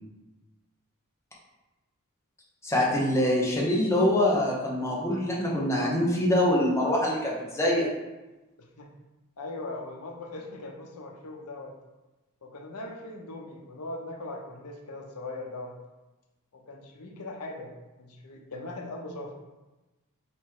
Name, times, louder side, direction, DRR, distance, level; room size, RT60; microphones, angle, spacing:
voice 1, 2.6-7.9, left 1 dB, 15° left, -4 dB, 0.9 m, -24 dB
voice 2, 8.6-8.9 9.4-11.7 12.4-15.8 16.5-19.4, left 2 dB, 85° left, 1 dB, 0.7 m, -40 dB
3.5 x 3.1 x 4.6 m, 1.1 s
head